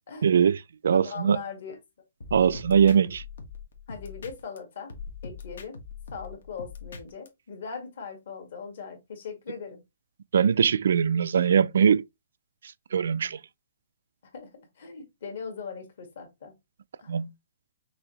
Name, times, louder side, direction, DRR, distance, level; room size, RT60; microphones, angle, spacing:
voice 1, 0.2-1.4 2.3-3.2 10.3-12.0 12.9-13.4 17.1-17.3, right 7 dB, 60° right, 0.3 m, -21 dB
voice 2, 0.9-1.7 3.9-4.9 5.2-5.8 6.1-9.8 14.3-16.5 17.0-17.2, left 6 dB, 50° left, 1.8 m, -40 dB
sound 1, 2.2-4.6 4.9-7.3, left 5 dB, 65° left, 1.3 m, -41 dB
6.1 x 2.7 x 3.0 m
hypercardioid pair, 180°, 0 cm